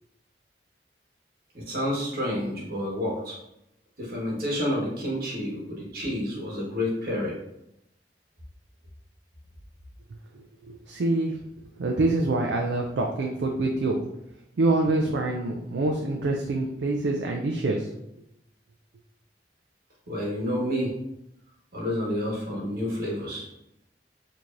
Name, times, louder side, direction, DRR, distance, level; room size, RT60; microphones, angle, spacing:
voice 1, 1.5-3.4 4.0-7.3 20.1-20.9 21.7-23.5, left 1 dB, 55° right, -4 dB, 1.3 m, -29 dB
voice 2, 10.7-11.4 11.8-14.0 14.6-17.9, right 2 dB, 80° right, 1 dB, 0.4 m, -25 dB
4.6 x 2.8 x 2.5 m, 0.83 s
head